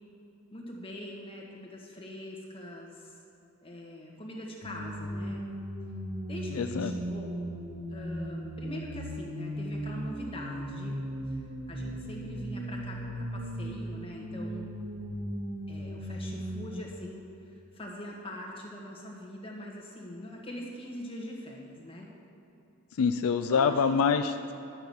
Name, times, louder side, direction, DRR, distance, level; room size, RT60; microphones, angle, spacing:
voice 1, 0.5-3.2 3.6-5.4 6.3-7.3 7.9-11.0 11.3-14.7 15.7-22.1 23.5-24.0, left 1 dB, 25° left, -1 dB, 1.5 m, -43 dB
sound 1, 4.6-16.7, equal, 40° right, 1.2 m, -37 dB
voice 2, 6.5-6.9 22.9-24.5, left 6 dB, 75° left, 9 dB, 0.4 m, -26 dB
11.5 x 5.9 x 7.1 m, 2.8 s
head